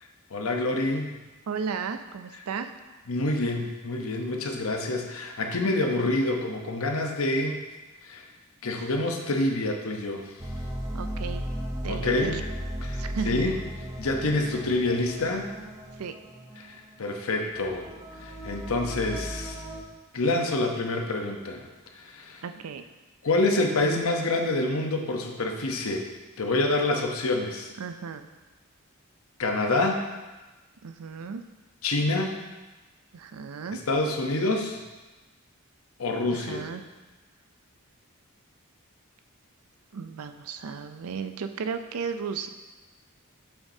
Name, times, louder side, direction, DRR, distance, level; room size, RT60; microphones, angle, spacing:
voice 1, 0.3-1.1 3.1-7.6 8.0-8.2 8.6-10.5 11.9-12.4 12.8-13.6 14.0-15.5 16.6-17.9 18.2-19.6 20.1-21.6 21.9-22.4 23.2-26.1 26.4-27.7 29.4-30.0 31.8-32.4 33.7-34.8 36.0-36.7, left 2 dB, 75° left, 3 dB, 0.8 m, -27 dB
voice 2, 1.5-2.7 10.9-11.5 11.8-12.4 12.9-13.4 16.0-16.2 22.4-22.8 27.8-28.2 30.8-31.4 33.1-33.8 36.3-36.8 39.9-42.5, right 6 dB, 90° right, 9 dB, 0.5 m, -34 dB
sound 1, 10.4-19.8, equal, 15° right, 0.8 m, -36 dB
7.1 x 7.0 x 2.7 m, 1.2 s
head